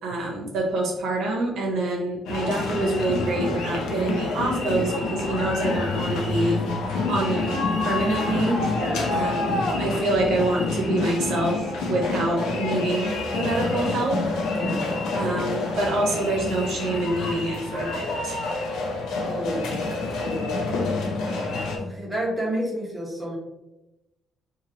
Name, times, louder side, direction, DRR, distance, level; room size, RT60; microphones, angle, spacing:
voice 1, 0.0-6.6 7.1-8.6 9.1-14.2 15.1-18.4, right 2 dB, 75° right, -1 dB, 0.8 m, -26 dB
sound 1, 2.3-21.8, left 3 dB, 80° left, 0.6 m, -27 dB
voice 2, 8.8-9.1 14.5-14.9 19.2-19.8 20.2-20.7 21.7-23.4, right 1 dB, ahead, -6 dB, 1.0 m, -30 dB
3.0 x 2.6 x 2.7 m, 0.96 s
cardioid pair, 110°, 0 cm